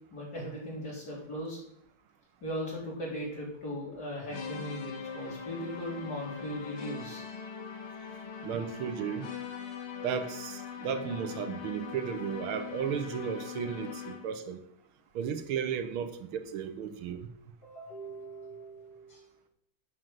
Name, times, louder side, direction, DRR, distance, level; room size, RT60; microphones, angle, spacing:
voice 1, 0.1-1.6 2.4-7.2 17.6-19.3, equal, 50° left, -4 dB, 4.2 m, -38 dB
sound 1, 4.3-14.4, left 6 dB, 80° left, 2.1 m, -41 dB
voice 2, 8.4-9.3 10.0-14.6 15.2-17.3, right 8 dB, 85° right, 8 dB, 1.8 m, -34 dB
9.2 x 6.5 x 7.5 m, 0.73 s
omnidirectional pair, 2.3 m